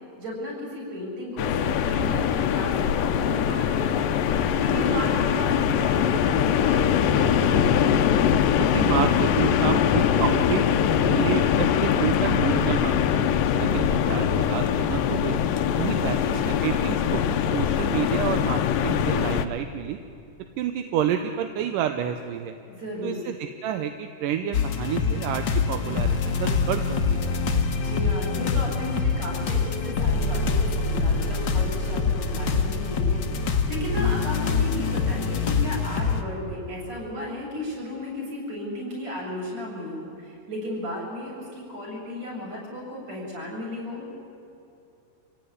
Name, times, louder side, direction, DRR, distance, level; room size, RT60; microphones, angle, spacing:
voice 1, 0.2-7.3 16.1-16.7 22.7-23.2 27.7-44.1, left 1 dB, 50° right, -4 dB, 8.4 m, -34 dB
sound 1, 1.4-19.5, left 8 dB, 85° left, 2.6 m, -22 dB
voice 2, 8.6-10.7 11.0-15.4 15.8-20.0 20.6-22.6 23.0-23.4 23.6-27.3, right 9 dB, 80° right, 7 dB, 2.4 m, -29 dB
sound 2, 24.5-36.2, left 5 dB, 55° left, 1.3 m, -25 dB
26.5 x 17.0 x 9.7 m, 2.6 s
omnidirectional pair, 3.9 m